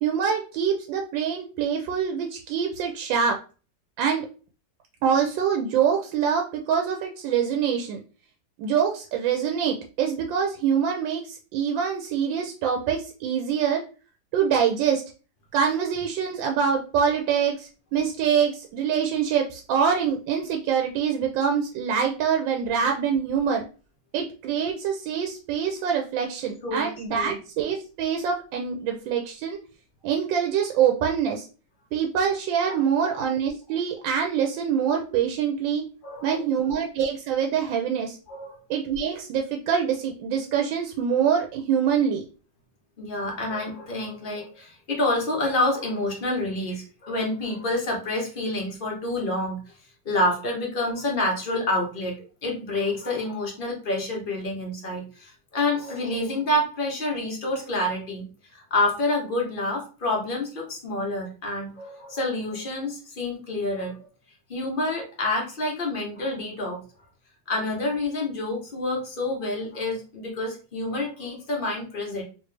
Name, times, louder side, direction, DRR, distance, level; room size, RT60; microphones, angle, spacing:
voice 1, 0.0-3.4 4.0-4.3 5.0-8.0 8.6-13.8 14.3-15.0 15.5-23.6 24.1-29.6 30.0-31.5 31.9-35.8 36.2-38.2 38.7-42.2, right 7 dB, 85° right, 3 dB, 1.3 m, -25 dB
voice 2, 26.6-27.4 32.7-33.1 36.0-36.6 38.3-38.6 43.0-49.6 50.0-52.1 52.4-58.3 58.5-64.0 64.5-66.8 67.5-72.2, left 2 dB, 35° left, 0 dB, 0.9 m, -28 dB
3.1 x 3.0 x 3.2 m, 0.35 s
omnidirectional pair, 2.0 m